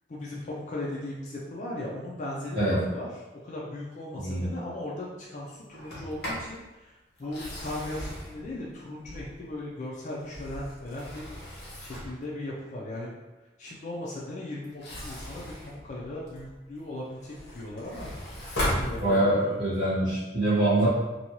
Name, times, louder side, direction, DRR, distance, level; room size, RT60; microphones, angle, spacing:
voice 1, 0.1-3.1 3.4-13.1 13.6-18.1 18.6-19.6, left 1 dB, 40° left, -5 dB, 0.4 m, -38 dB
Sliding door, 5.7-6.5 7.2-9.5 10.1-12.2 14.6-16.6 17.0-19.5, equal, 55° left, 0.9 m, -36 dB
voice 2, 19.0-20.9, right 1 dB, 55° right, -13 dB, 0.9 m, -24 dB
2.6 x 2.2 x 2.9 m, 1.1 s
head